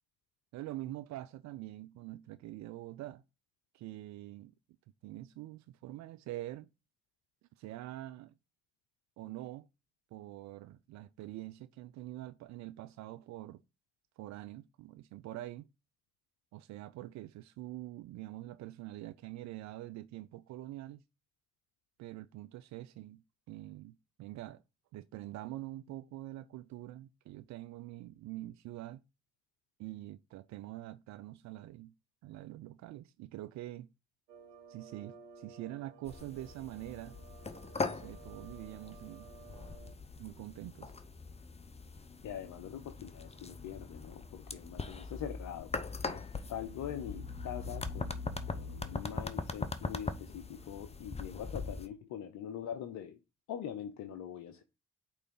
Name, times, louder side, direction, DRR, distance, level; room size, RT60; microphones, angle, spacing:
voice 1, 0.5-3.2 3.7-4.5 5.0-6.7 7.6-8.3 9.2-9.7 10.1-13.6 14.2-15.7 16.5-21.0 22.0-23.2 23.5-24.6 24.9-29.0 29.8-31.9 32.2-33.9 34.7-37.2 37.9-39.3 40.2-40.9, right 15 dB, 55° right, 0.4 m, -45 dB
sound 1, 34.3-39.9, right 6 dB, 80° right, 0.9 m, -55 dB
sound 2, 36.1-51.9, left 3 dB, 20° left, 0.7 m, -41 dB
voice 2, 42.2-45.7 46.0-46.2 46.5-53.2 53.5-54.6, left 9 dB, 55° left, 0.7 m, -43 dB
8.4 x 3.3 x 3.8 m
figure-of-eight pair, 40°, 35 cm